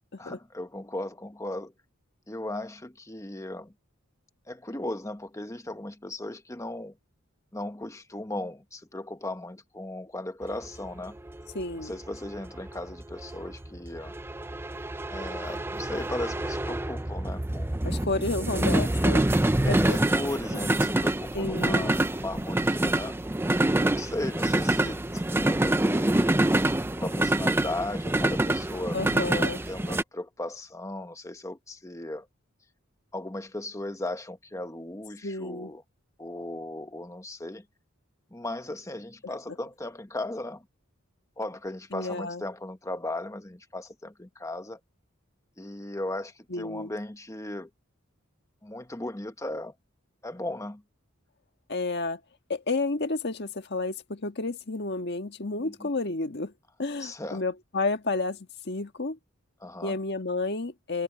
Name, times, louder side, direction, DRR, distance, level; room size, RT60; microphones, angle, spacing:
voice 1, 0.2-1.7 2.3-3.7 4.5-7.0 7.5-11.2 11.8-14.1 15.1-17.8 19.6-23.2 23.8-26.3 27.0-29.0 29.7-32.3 33.1-35.8 36.2-37.6 38.3-40.6 41.4-44.8 45.6-47.7 48.6-49.7 50.2-50.8 55.6-55.9 57.0-57.4 59.6-60.0, left 1 dB, 15° left, 1.1 m, -36 dB
sound 1, 10.5-30.0, right 1 dB, 10° right, 0.5 m, -26 dB
voice 2, 11.5-11.9 17.8-19.3 19.7-20.0 21.3-22.0 28.9-29.6 35.2-35.7 39.2-39.3 41.9-42.4 46.5-46.9 51.7-52.2 52.5-56.5 56.8-59.2 59.8-61.0, left 3 dB, 55° left, 1.6 m, -31 dB
head